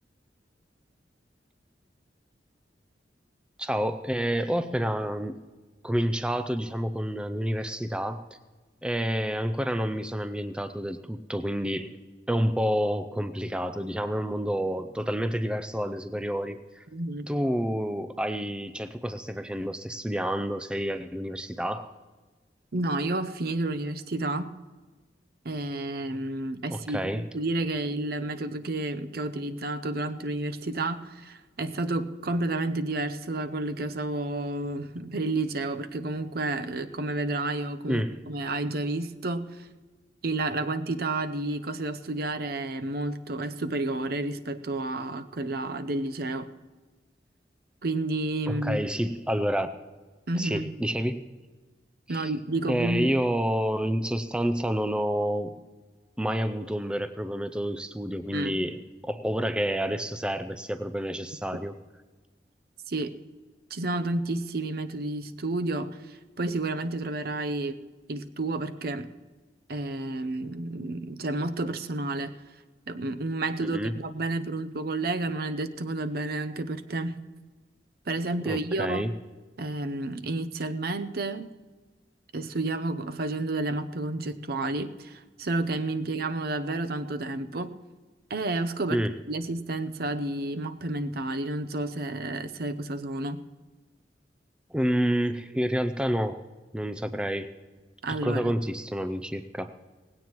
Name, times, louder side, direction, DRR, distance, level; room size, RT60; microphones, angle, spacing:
voice 1, 3.6-5.4 5.8-8.2 8.8-11.9 12.3-16.8 17.3-21.9 26.7-27.2 37.9-38.2 48.5-49.8 50.3-51.2 52.1-52.3 52.7-55.6 56.2-61.8 73.6-73.9 78.4-79.1 88.9-89.1 94.7-96.4 96.7-97.5 98.2-99.7, equal, 5° right, 10 dB, 0.4 m, -29 dB
voice 2, 16.9-17.3 22.7-24.5 25.4-39.7 40.2-46.5 47.8-48.8 50.3-50.7 52.1-53.1 58.3-58.6 62.9-63.1 63.7-67.8 68.1-69.1 69.7-72.3 72.9-77.2 78.1-79.1 79.6-81.5 82.3-87.7 88.3-89.0 89.3-93.4 98.0-98.5, right 2 dB, 60° right, 10 dB, 0.7 m, -30 dB
18.5 x 16.5 x 3.0 m, 1.3 s
head